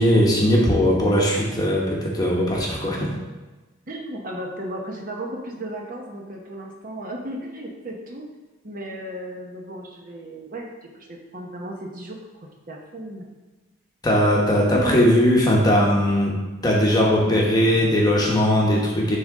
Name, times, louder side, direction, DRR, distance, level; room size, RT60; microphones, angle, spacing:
voice 1, 0.0-3.1 14.0-16.3 16.6-19.2, equal, 20° left, -3 dB, 1.0 m, -19 dB
voice 2, 3.9-8.2 8.6-12.2 12.7-13.3 14.7-15.0, right 1 dB, 40° right, 0 dB, 0.9 m, -34 dB
10.5 x 3.7 x 3.6 m, 1.2 s
head